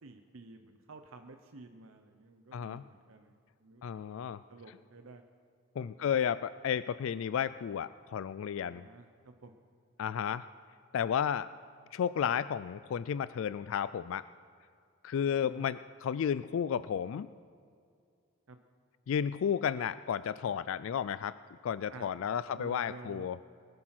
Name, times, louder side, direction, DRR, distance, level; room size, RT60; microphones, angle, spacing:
voice 1, 0.0-3.4 3.6-4.1 4.5-5.2 5.8-6.1 8.7-9.6 15.2-15.6 18.5-18.6 21.9-23.3, right 3 dB, 75° right, 6 dB, 0.8 m, -52 dB
voice 2, 2.5-2.8 3.8-4.4 5.8-8.8 10.0-10.4 10.9-11.5 11.9-14.2 15.0-17.3 19.1-21.3 21.6-23.4, left 8 dB, 70° left, 15 dB, 0.3 m, -32 dB
19.5 x 10.5 x 6.0 m, 2.3 s
head